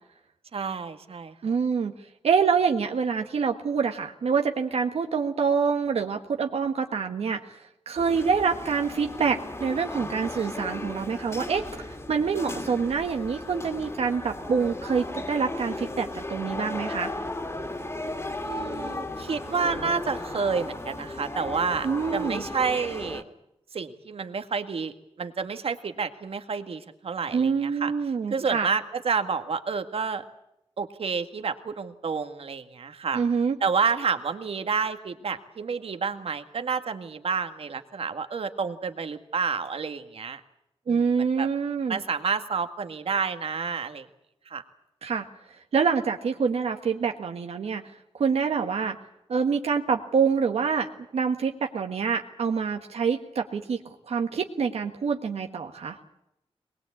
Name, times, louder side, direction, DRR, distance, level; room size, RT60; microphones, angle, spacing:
voice 1, 0.5-1.6 18.4-21.9 22.1-23.2 23.7-27.9 28.3-30.2 30.8-33.2 33.6-40.4 40.9-41.1 41.4-41.5 41.9-44.1 44.5-44.6, right 5 dB, 70° right, 7 dB, 1.8 m, -29 dB
voice 2, 1.4-1.9 2.2-17.1 21.8-22.4 27.3-28.7 33.1-33.5 40.9-42.0 45.0-45.3 45.7-49.0 49.3-56.0, right 6 dB, 90° right, 4 dB, 1.6 m, -26 dB
sound 1, 8.0-23.2, left 2 dB, 25° left, 2.3 m, -35 dB
23.0 x 20.5 x 8.6 m, 0.83 s
wide cardioid pair, 95°, 10 cm